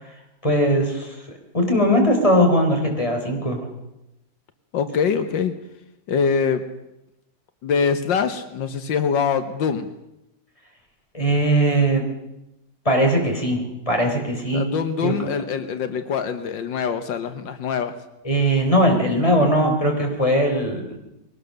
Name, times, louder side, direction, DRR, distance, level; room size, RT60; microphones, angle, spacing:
voice 1, 0.4-1.2 1.5-3.7 11.1-12.1 12.9-14.7 15.0-15.1 18.2-21.0, equal, 15° left, 2 dB, 4.0 m, -19 dB
voice 2, 4.7-5.5 6.1-6.6 7.6-9.9 14.5-17.9, left 6 dB, 85° left, 10 dB, 1.8 m, -23 dB
22.0 x 18.0 x 6.6 m, 0.89 s
omnidirectional pair, 2.0 m